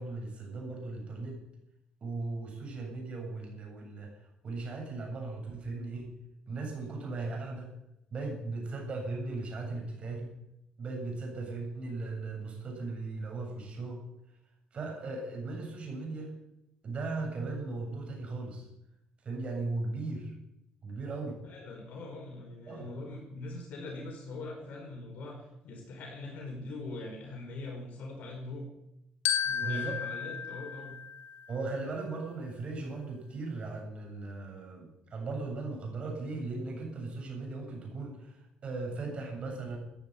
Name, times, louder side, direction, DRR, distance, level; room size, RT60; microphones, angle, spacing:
voice 1, 0.0-1.4 2.0-4.1 4.4-6.1 6.5-7.7 8.1-10.3 10.8-14.0 14.7-16.3 16.8-18.7 19.2-20.3 20.8-21.4 22.7-22.9 29.6-30.0 31.5-39.8, right 3 dB, 40° right, 1 dB, 7.6 m, -37 dB
voice 2, 21.4-28.6 29.4-30.9, left 2 dB, 65° left, 0 dB, 5.2 m, -42 dB
Glockenspiel, 29.2-31.7, left 8 dB, 90° left, 1.9 m, -34 dB
15.0 x 9.6 x 9.5 m, 0.86 s
cardioid pair, 105°, 3 cm